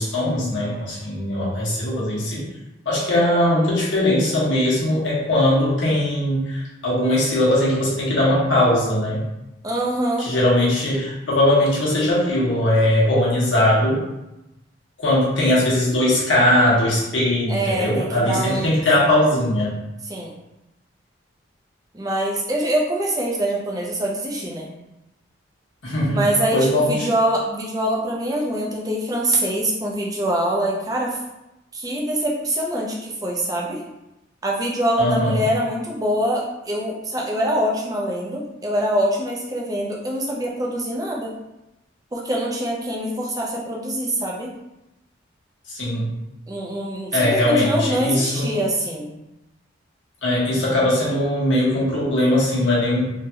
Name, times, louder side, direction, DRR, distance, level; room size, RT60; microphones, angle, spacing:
voice 1, 0.0-2.5 2.8-9.3 10.2-14.0 15.0-19.7 25.8-26.2 26.5-27.1 35.0-35.4 45.7-46.2 47.1-48.6 50.2-53.1, left 1 dB, 85° left, -6 dB, 1.1 m, -20 dB
voice 2, 9.6-10.3 17.5-18.7 20.0-20.4 21.9-24.7 26.1-31.2 31.7-33.8 34.4-41.3 42.1-44.5 46.5-49.1, right 1 dB, 20° right, -2 dB, 0.5 m, -24 dB
3.3 x 2.7 x 2.2 m, 0.91 s
head